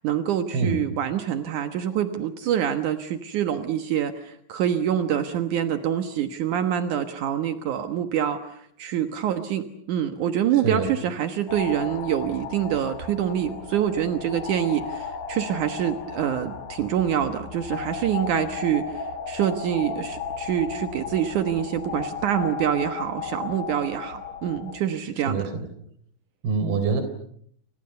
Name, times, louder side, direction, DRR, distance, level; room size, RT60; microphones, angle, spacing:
voice 1, 0.0-25.4, right 10 dB, 75° right, 8 dB, 1.8 m, -26 dB
sound 1, 11.5-24.8, left 5 dB, 50° left, 3.1 m, -35 dB
voice 2, 25.3-25.7 26.4-27.0, right 4 dB, 55° right, 10 dB, 5.6 m, -25 dB
29.5 x 27.5 x 6.8 m, 0.65 s
omnidirectional pair, 5.6 m